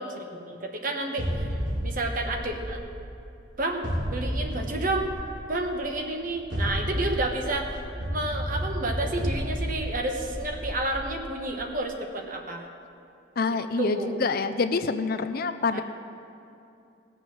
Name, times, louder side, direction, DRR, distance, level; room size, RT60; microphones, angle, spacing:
voice 1, 0.0-1.6 1.8-2.8 3.6-3.8 4.1-5.1 5.5-7.7 8.1-12.7 13.8-14.2 15.7-15.8, right 2 dB, 45° right, 3 dB, 1.2 m, -30 dB
sound 1, 1.2-3.3 3.8-5.7 6.3-11.4, equal, 85° right, 3.1 m, -32 dB
voice 2, 13.4-15.8, left 4 dB, 50° left, 10 dB, 0.5 m, -26 dB
18.5 x 7.1 x 6.0 m, 2.7 s
head